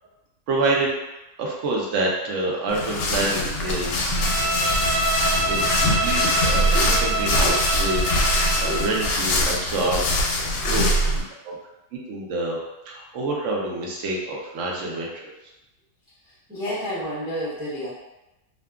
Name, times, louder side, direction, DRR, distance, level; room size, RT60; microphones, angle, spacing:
voice 1, 0.5-0.9 1.4-4.2 5.5-6.7 7.0-7.5 7.8-10.0 10.4-10.9 11.4-11.6 12.1-12.6 12.9-15.3, right 2 dB, 65° right, -2 dB, 0.8 m, -27 dB
sound 1, 2.7-11.2, left 1 dB, 75° left, 1.0 m, -23 dB
Bowed string instrument, 4.1-9.0, right 2 dB, 85° right, 1.1 m, -26 dB
voice 2, 4.4-4.7 6.1-6.2 6.6-7.5 8.5-8.9 10.6-10.8 16.2-17.9, equal, 5° right, -10 dB, 0.5 m, -32 dB
2.7 x 2.4 x 2.3 m, 0.96 s
omnidirectional pair, 1.7 m